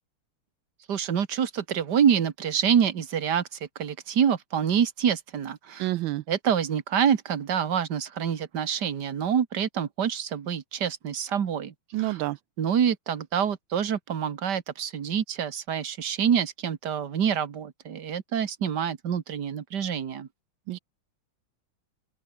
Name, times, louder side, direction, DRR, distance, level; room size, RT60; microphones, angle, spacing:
voice 1, 0.9-5.9 6.3-12.2 12.6-20.3, right 8 dB, 55° right, 2.0 m, -26 dB
voice 2, 5.8-6.2 11.9-12.4 20.7-20.8, right 17 dB, 75° right, 1.3 m, -28 dB
open air
omnidirectional pair, 2.3 m